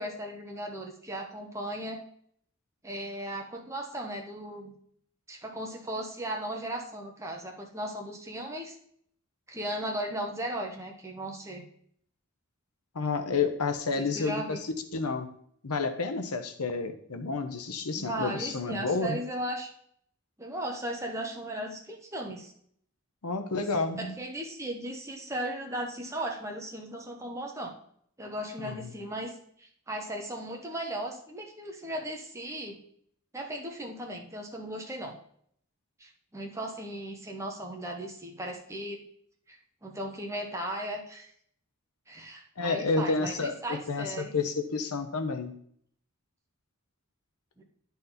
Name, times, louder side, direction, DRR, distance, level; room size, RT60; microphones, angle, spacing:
voice 1, 0.0-2.0 2.8-4.7 5.3-8.7 9.5-11.6 14.0-14.6 18.0-19.7 20.4-22.5 23.6-23.7 24.0-27.7 28.2-29.3 29.6-32.8 33.3-35.2 36.0-39.0 39.5-41.3 42.1-44.3 47.6-47.7, right 1 dB, 15° right, 1 dB, 1.0 m, -36 dB
voice 2, 12.9-15.3 15.6-19.2 23.2-24.2 28.6-28.9 42.6-45.5, left 4 dB, 85° left, 7 dB, 0.9 m, -30 dB
10.5 x 4.1 x 4.0 m, 0.64 s
head